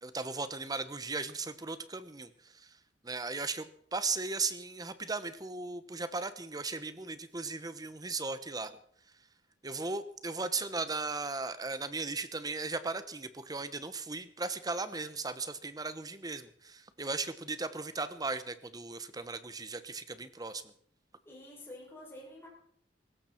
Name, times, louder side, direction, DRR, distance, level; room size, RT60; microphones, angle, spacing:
voice 1, 0.0-2.8 3.0-8.8 9.6-20.6, right 3 dB, 20° right, 12 dB, 1.0 m, -37 dB
voice 2, 21.3-22.5, left 1 dB, 15° left, -5 dB, 6.8 m, -48 dB
19.0 x 16.5 x 4.5 m, 0.65 s
head